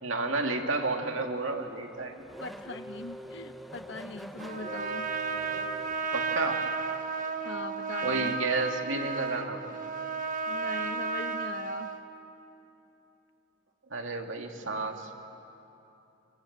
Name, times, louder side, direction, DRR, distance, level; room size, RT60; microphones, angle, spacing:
voice 1, 0.0-2.2 6.1-6.6 8.0-9.6 13.9-15.1, right 3 dB, 70° right, 3 dB, 2.4 m, -31 dB
Race car auto racing / Accelerating revving vroom, 1.1-6.7, equal, ahead, 0.9 m, -45 dB
voice 2, 2.4-5.1 7.4-8.3 10.5-11.9, left 2 dB, 60° left, 8 dB, 1.2 m, -41 dB
Trumpet, 4.4-12.0, right 5 dB, 40° right, 1.3 m, -33 dB
26.0 x 25.0 x 8.1 m, 2.9 s
head